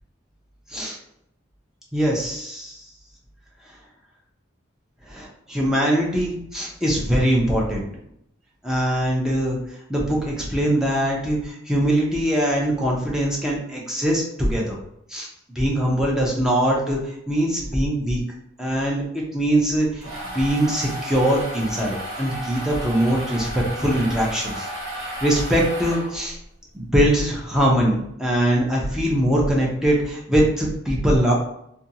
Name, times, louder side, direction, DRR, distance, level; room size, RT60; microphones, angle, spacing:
voice 1, 1.9-2.9 5.1-8.0 8.6-9.6 9.9-14.8 15.1-15.3 15.5-18.2 18.6-24.7 25.0-26.4 26.7-31.3, right 1 dB, 5° right, -3 dB, 0.5 m, -22 dB
sound 1, 19.8-26.4, right 1 dB, 90° right, 1.1 m, -33 dB
2.6 x 2.2 x 2.7 m, 0.75 s
head